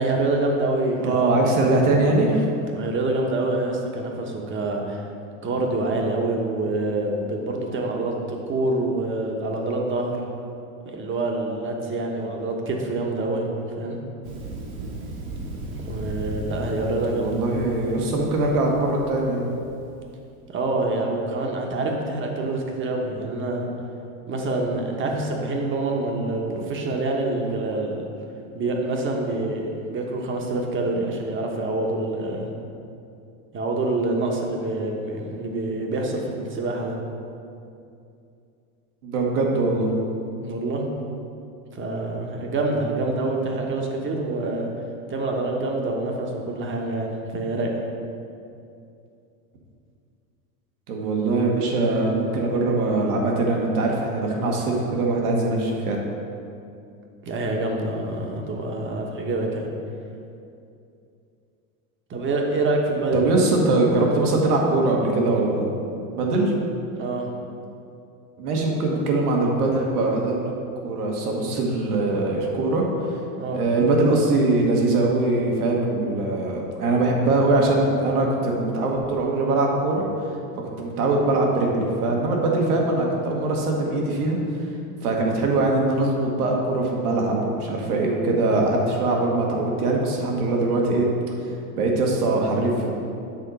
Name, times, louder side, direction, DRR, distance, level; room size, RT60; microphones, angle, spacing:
voice 1, 0.0-1.4 2.7-5.0 5.4-10.2 10.8-13.5 13.8-14.0 15.9-17.3 20.5-23.7 24.3-28.0 28.5-32.5 33.5-37.0 40.4-40.8 41.7-44.7 45.1-47.7 57.2-59.7 62.1-63.3 67.0-67.3 73.4-73.6, right 2 dB, 25° right, 1 dB, 1.1 m, -26 dB
voice 2, 1.0-2.4 17.1-19.5 39.0-39.9 50.9-56.0 63.1-65.6 66.1-66.5 68.4-70.5 70.8-72.8 73.5-80.1 80.8-84.7 85.0-91.1 91.8-92.9, right 2 dB, 80° right, 0 dB, 1.5 m, -22 dB
Thunder, 14.2-20.1, right 2 dB, 65° right, 1.4 m, -36 dB
7.6 x 3.7 x 5.2 m, 2.6 s
hypercardioid pair, 110°, 44 cm